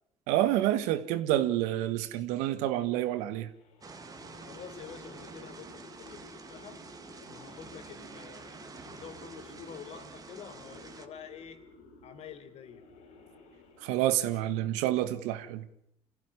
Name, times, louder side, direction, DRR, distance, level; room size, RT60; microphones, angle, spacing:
voice 1, 0.3-3.5 13.8-15.7, right 13 dB, 90° right, 1.7 m, -28 dB
sound 1, 3.6-14.7, left 3 dB, 80° left, 5.2 m, -54 dB
sound 2, 3.8-11.1, right 4 dB, 30° right, 2.2 m, -48 dB
voice 2, 4.5-6.8 7.3-11.6 12.0-12.8, left 7 dB, 65° left, 3.7 m, -48 dB
25.5 x 15.5 x 10.0 m
supercardioid pair, 90°, 12 cm